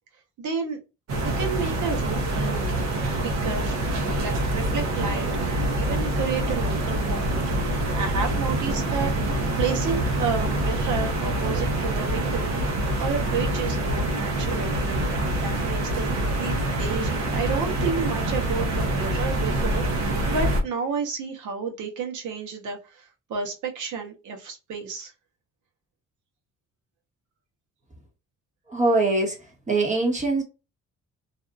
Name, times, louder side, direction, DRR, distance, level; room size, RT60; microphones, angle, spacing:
voice 1, 0.4-0.8 1.2-3.7 4.0-12.5 13.0-15.1 15.4-25.1, right 5 dB, 80° right, 1.0 m, -31 dB
sound 1, 1.1-20.6, right 1 dB, 60° right, 0.9 m, -25 dB
voice 2, 28.7-29.4 29.7-30.4, right 2 dB, 25° right, 1.2 m, -22 dB
2.6 x 2.4 x 2.3 m
cardioid pair, 90°, 30 cm